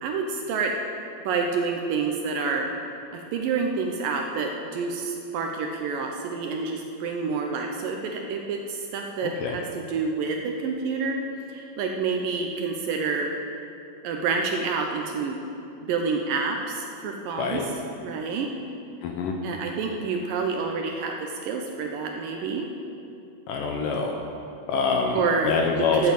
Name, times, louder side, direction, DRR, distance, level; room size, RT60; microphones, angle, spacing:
voice 1, 0.0-0.7 1.3-2.7 3.1-11.2 11.5-13.3 14.0-15.4 15.9-17.6 18.0-18.5 19.4-22.7 25.1-26.1, right 4 dB, 75° right, 2 dB, 2.2 m, -28 dB
voice 2, 9.2-9.6 17.4-17.6 19.0-19.4 23.5-24.1 24.7-26.1, left 5 dB, 75° left, 2 dB, 2.2 m, -25 dB
13.0 x 7.3 x 7.3 m, 2.7 s
omnidirectional pair, 4.5 m